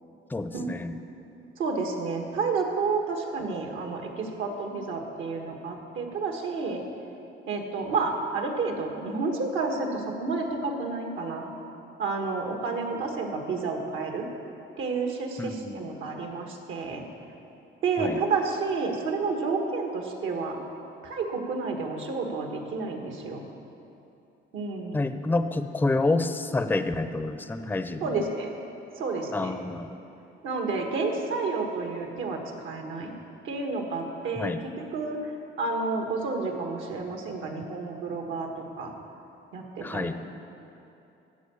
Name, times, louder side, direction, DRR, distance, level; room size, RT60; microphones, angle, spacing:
voice 1, 0.3-1.0 15.4-15.9 18.0-18.2 24.9-28.3 29.3-29.9 34.4-34.7 39.8-40.2, left 2 dB, 10° left, 10 dB, 0.5 m, -28 dB
voice 2, 1.6-6.8 7.5-11.5 12.0-14.3 14.8-17.0 17.8-20.6 21.0-23.4 24.5-25.1 28.0-28.5 29.0-29.6 30.4-33.1 33.4-34.5 34.9-35.3 35.6-38.9 39.5-40.1, right 4 dB, 80° right, 3 dB, 1.4 m, -30 dB
14.0 x 4.7 x 8.3 m, 2.8 s
cardioid pair, 90°, 20 cm